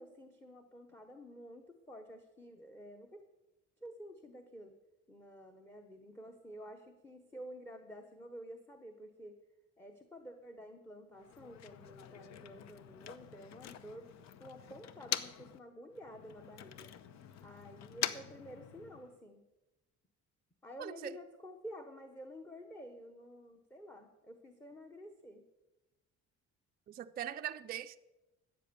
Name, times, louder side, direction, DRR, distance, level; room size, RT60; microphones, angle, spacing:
voice 1, 0.0-3.2 3.8-4.7 5.1-9.4 9.8-14.1 14.4-16.9 17.3-19.4 20.6-25.5, equal, 10° left, 6 dB, 1.0 m, -51 dB
Motor vehicle (road), 11.1-15.6 15.9-19.2, left 10 dB, 65° left, 0.9 m, -44 dB
voice 2, 20.8-21.2 26.9-28.0, right 11 dB, 30° right, 8 dB, 0.4 m, -41 dB
13.5 x 8.8 x 6.9 m, 1.0 s
cardioid pair, 150°, 29 cm